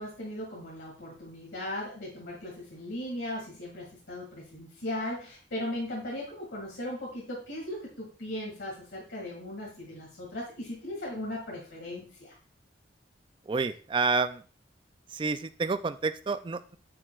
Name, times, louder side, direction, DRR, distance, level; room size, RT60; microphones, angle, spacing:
voice 1, 0.0-12.3, left 1 dB, 80° left, -3 dB, 2.0 m, -38 dB
voice 2, 13.5-14.4 15.1-16.8, right 4 dB, 25° right, 12 dB, 0.3 m, -29 dB
9.9 x 4.5 x 2.3 m, 0.39 s
head